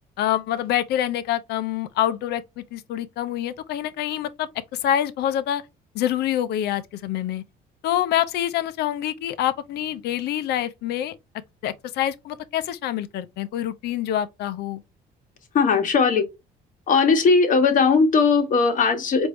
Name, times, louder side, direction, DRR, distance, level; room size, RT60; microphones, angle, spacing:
voice 1, 0.2-5.6 5.9-7.4 7.8-11.1 11.6-14.8, left 11 dB, 75° left, 0.6 m, -26 dB
voice 2, 15.5-16.3 16.9-19.3, left 4 dB, 50° left, 1.3 m, -18 dB
4.5 x 2.7 x 3.1 m
cardioid pair, 110°, 17 cm